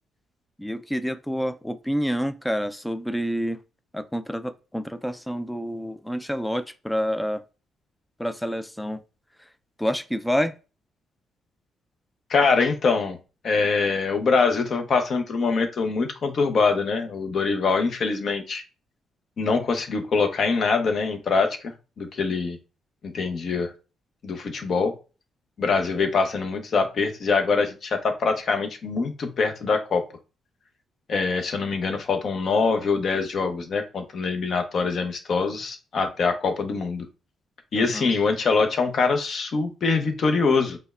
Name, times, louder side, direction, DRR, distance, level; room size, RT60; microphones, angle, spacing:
voice 1, 0.6-3.6 3.9-7.4 8.2-9.0 9.4-9.5 9.8-10.5 37.7-38.1, equal, 5° left, 0.3 m, -28 dB
voice 2, 12.3-13.2 13.4-18.6 19.4-22.6 23.1-23.7 24.2-24.9 25.6-30.0 31.1-37.0 37.7-40.8, left 4 dB, 55° left, 0.7 m, -24 dB
5.1 x 2.1 x 2.4 m
cardioid pair, 90°, 0 cm